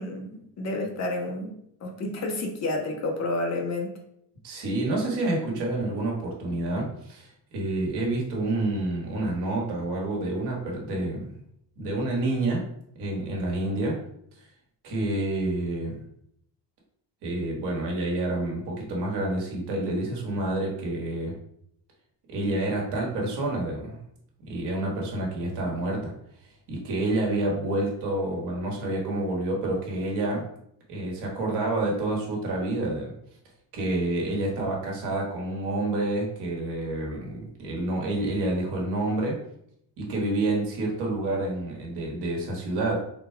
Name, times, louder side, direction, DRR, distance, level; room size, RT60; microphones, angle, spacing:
voice 1, 0.0-3.9, left 2 dB, 40° left, 2 dB, 0.7 m, -30 dB
voice 2, 4.4-11.3 11.8-12.7 13.0-14.0 14.4-14.5 14.8-16.0 17.2-21.3 22.3-24.0 24.4-26.1 26.7-30.5 30.9-33.1 33.7-39.4 40.0-42.9, right 2 dB, 80° right, -1 dB, 1.4 m, -28 dB
4.0 x 2.3 x 4.3 m, 0.72 s
cardioid pair, 165°, 40 cm